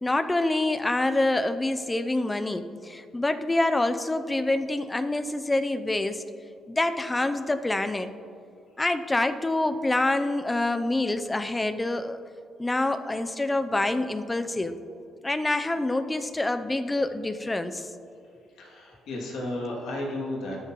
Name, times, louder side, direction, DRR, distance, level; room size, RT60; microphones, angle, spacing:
voice 1, 0.0-6.2 6.7-8.1 8.8-12.2 12.6-14.8 15.2-17.8 19.7-19.8, left 2 dB, 15° left, 11 dB, 0.5 m, -26 dB
voice 2, 18.6-20.6, left 1 dB, 75° left, -3 dB, 2.5 m, -33 dB
18.0 x 6.8 x 3.0 m, 2.5 s
cardioid pair, 90°, 0 cm